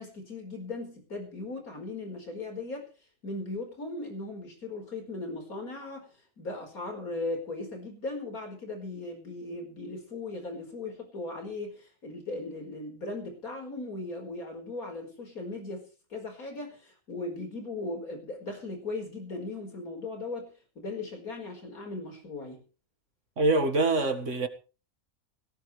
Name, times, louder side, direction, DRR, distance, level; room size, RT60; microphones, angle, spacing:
voice 1, 0.0-2.9 3.2-6.1 6.4-15.8 16.1-22.6, left 2 dB, 75° left, 5.2 m, -38 dB
voice 2, 23.4-24.5, right 2 dB, 55° right, 2.1 m, -24 dB
18.5 x 17.0 x 3.3 m
omnidirectional pair, 1.6 m